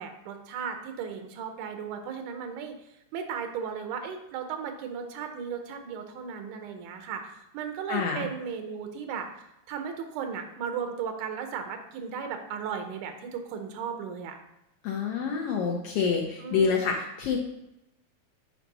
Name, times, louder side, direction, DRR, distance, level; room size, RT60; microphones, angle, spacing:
voice 1, 0.0-2.7 3.1-14.4 16.4-16.9, right 7 dB, 85° right, 6 dB, 2.3 m, -36 dB
voice 2, 7.9-8.3 14.8-17.4, left 6 dB, 75° left, 0 dB, 1.4 m, -27 dB
7.1 x 4.7 x 3.9 m, 0.88 s
omnidirectional pair, 3.5 m